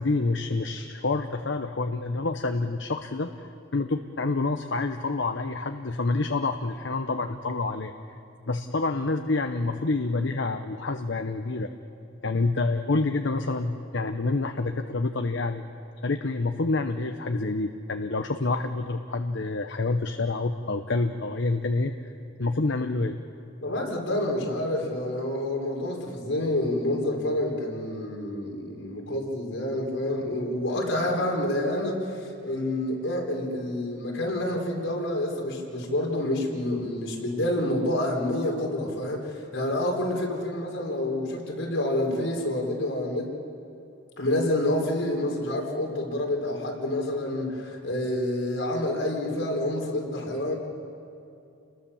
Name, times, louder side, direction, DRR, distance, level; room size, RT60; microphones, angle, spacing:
voice 1, 0.0-7.9 8.5-11.7 12.2-15.6 16.0-22.1 22.4-23.2, left 3 dB, 70° left, 6 dB, 0.9 m, -27 dB
voice 2, 23.6-43.3 44.2-50.5, left 1 dB, 90° left, 0 dB, 4.6 m, -28 dB
30.0 x 20.5 x 7.1 m, 2.6 s
head